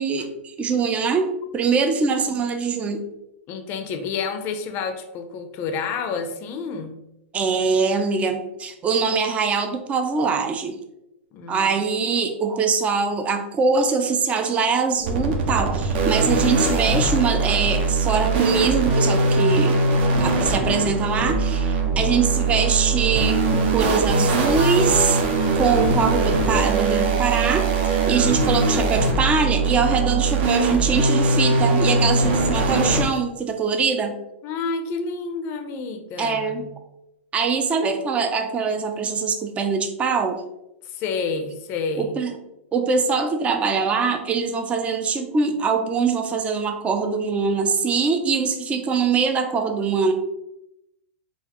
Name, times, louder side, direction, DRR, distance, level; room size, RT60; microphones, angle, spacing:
voice 1, 0.0-3.1 7.3-10.8 11.5-19.9 20.2-25.2 25.6-34.2 36.2-36.7 37.3-40.4 42.0-42.4 42.7-50.1, right 5 dB, 20° right, 6 dB, 0.4 m, -23 dB
voice 2, 3.5-7.0 11.3-11.7 28.2-29.0 34.4-36.7 40.8-42.2, left 5 dB, 35° left, 6 dB, 0.5 m, -30 dB
sound 1, 15.0-33.0, right 3 dB, 50° right, 0.7 m, -21 dB
3.9 x 2.4 x 2.9 m, 0.87 s
hypercardioid pair, 135°, 7 cm